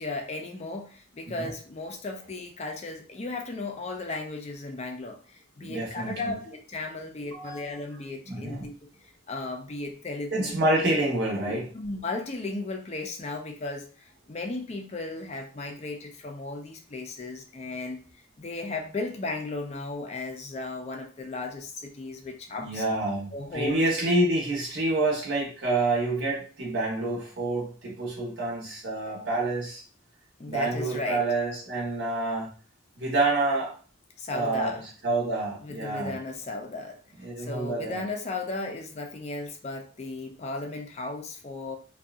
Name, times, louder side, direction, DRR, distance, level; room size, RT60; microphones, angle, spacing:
voice 1, 0.0-8.7 9.3-10.5 11.5-22.8 23.3-23.8 30.4-31.2 34.2-34.8 35.6-37.0 37.4-41.8, left 3 dB, 35° left, 3 dB, 0.4 m, -35 dB
voice 2, 5.7-6.3 7.3-7.7 8.3-8.6 10.3-11.7 22.6-29.8 30.5-32.5 33.0-33.7 34.3-34.7 35.0-36.2 37.2-38.0, right 2 dB, 55° right, -3 dB, 0.9 m, -28 dB
2.6 x 2.3 x 2.3 m, 0.39 s
head